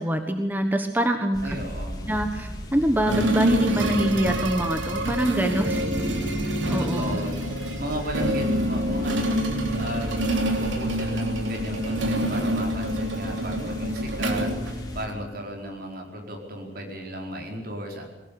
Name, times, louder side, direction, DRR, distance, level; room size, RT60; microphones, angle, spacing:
voice 1, 0.0-1.6 2.1-5.8 6.7-7.2, right 1 dB, 10° right, 6 dB, 1.3 m, -25 dB
sound 1, 1.3-15.1, equal, 20° left, 3.7 m, -37 dB
voice 2, 1.4-2.1 5.7-6.2 6.8-7.5 7.8-10.1 10.6-18.0, equal, 55° right, 2 dB, 4.8 m, -35 dB
sound 2, 3.1-15.3, right 1 dB, 90° right, 3.2 m, -27 dB
21.0 x 18.5 x 8.7 m, 0.99 s
head